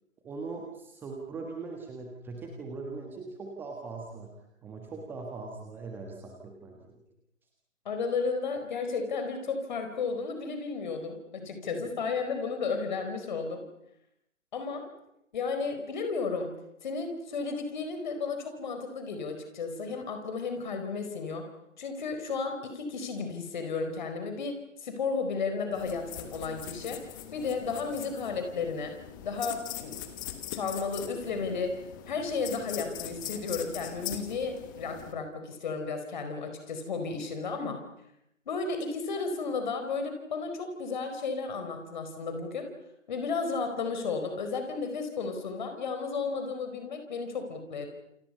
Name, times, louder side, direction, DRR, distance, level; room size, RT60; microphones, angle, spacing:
voice 1, 0.2-4.3 4.6-7.0 11.7-11.8, right 3 dB, 5° right, 1 dB, 1.4 m, -40 dB
voice 2, 7.8-13.6 14.5-14.8 15.3-16.5 16.8-21.5 21.8-24.6 24.8-27.0 27.3-28.9 29.2-30.0 30.5-31.7 32.1-37.8 38.5-42.7 43.1-47.9, left 4 dB, 35° left, 6 dB, 4.6 m, -33 dB
sound 1, 25.7-35.1, left 11 dB, 15° left, 1.3 m, -41 dB
29.5 x 28.5 x 5.6 m, 0.81 s
figure-of-eight pair, 140°, 39 cm